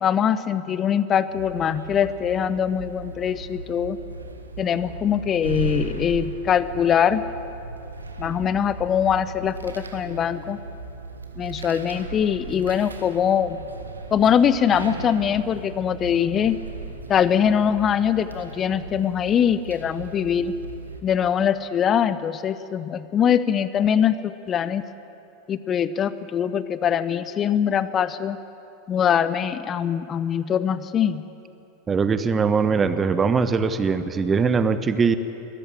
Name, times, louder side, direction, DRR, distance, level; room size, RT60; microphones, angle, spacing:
voice 1, 0.0-4.0 4.6-7.2 8.2-10.6 11.4-13.6 14.1-16.6 17.1-20.5 21.0-24.8 25.5-28.4 28.9-31.2, left 8 dB, 30° left, 15 dB, 0.7 m, -22 dB
sound 1, 1.3-21.0, right 4 dB, 85° right, 1.4 m, -37 dB
voice 2, 31.9-35.2, right 5 dB, 25° right, 12 dB, 1.1 m, -21 dB
22.0 x 14.0 x 9.1 m, 2.9 s
figure-of-eight pair, 85°, 0 cm